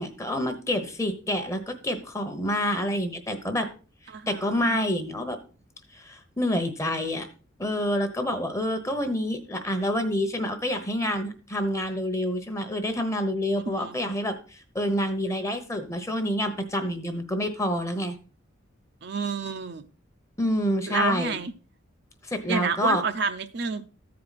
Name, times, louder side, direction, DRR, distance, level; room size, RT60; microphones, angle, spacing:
voice 1, 0.0-3.7 4.3-5.4 5.9-7.3 7.6-18.2 20.4-21.4 22.2-23.0, equal, 15° left, 0.9 m, -27 dB
voice 2, 4.1-4.8 13.7-14.0 19.0-19.9 20.9-21.5 22.5-23.9, right 5 dB, 55° right, 0.6 m, -29 dB
14.0 x 4.8 x 4.0 m
head